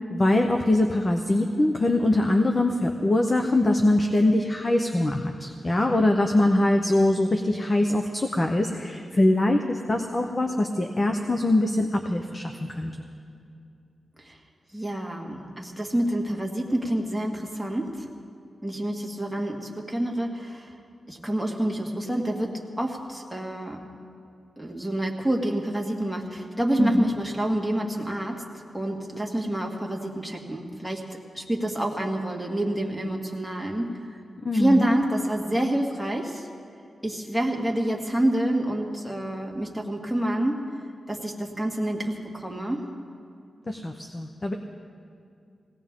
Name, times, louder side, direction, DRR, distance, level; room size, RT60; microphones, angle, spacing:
voice 1, 0.1-13.1 26.8-27.1 34.4-34.9 43.7-44.5, left 1 dB, 30° left, 4 dB, 0.8 m, -23 dB
voice 2, 14.7-18.1 18.6-20.7 21.1-23.8 24.6-28.4 28.7-31.0 31.3-33.9 34.5-36.5 37.0-40.6 41.1-42.8, right 1 dB, ahead, -1 dB, 1.9 m, -27 dB
19.5 x 17.5 x 3.7 m, 2.5 s
wide cardioid pair, 95°, 0 cm